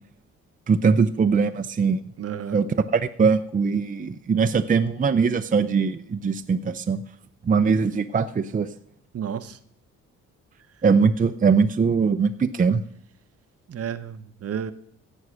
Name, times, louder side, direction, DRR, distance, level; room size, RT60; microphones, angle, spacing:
voice 1, 0.7-2.0 2.5-7.0 7.4-8.7 10.8-12.8, right 5 dB, 25° right, 0.6 m, -21 dB
voice 2, 2.2-2.6 9.1-9.6 13.7-14.7, right 8 dB, 50° right, 0.9 m, -31 dB
16.5 x 6.3 x 6.3 m
cardioid pair, 90°, 30 cm